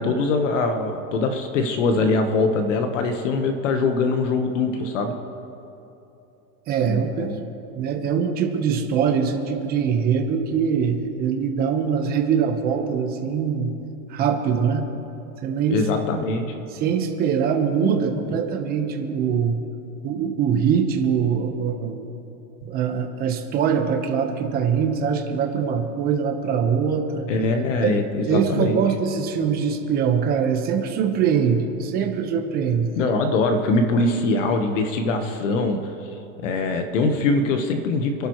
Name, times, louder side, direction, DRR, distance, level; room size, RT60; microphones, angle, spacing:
voice 1, 0.0-5.1 6.9-7.4 15.7-16.6 27.3-28.8 33.0-35.8 36.4-38.3, left 3 dB, 55° left, 5 dB, 1.3 m, -22 dB
voice 2, 6.7-7.3 7.7-13.7 14.1-14.8 15.4-15.8 16.7-19.6 20.0-22.1 22.6-27.3 27.8-28.0 28.3-32.9, right 7 dB, 20° right, 4 dB, 1.1 m, -23 dB
28.0 x 12.0 x 3.2 m, 2.9 s
supercardioid pair, 160°, 44 cm